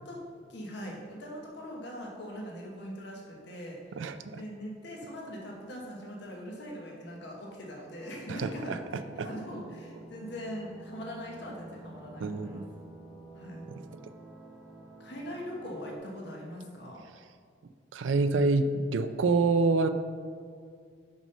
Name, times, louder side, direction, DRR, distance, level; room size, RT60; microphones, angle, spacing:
voice 1, 0.5-8.8 9.2-12.6 13.3-13.7 15.0-17.0, equal, 65° left, -2 dB, 1.2 m, -41 dB
voice 2, 4.0-4.4 8.3-9.0 12.2-12.6 14.0-14.1 17.9-19.9, right 3 dB, 80° right, 10 dB, 0.4 m, -27 dB
sound 1, 8.0-16.0, right 1 dB, ahead, 1.0 m, -49 dB
6.1 x 5.4 x 5.4 m, 2.1 s
head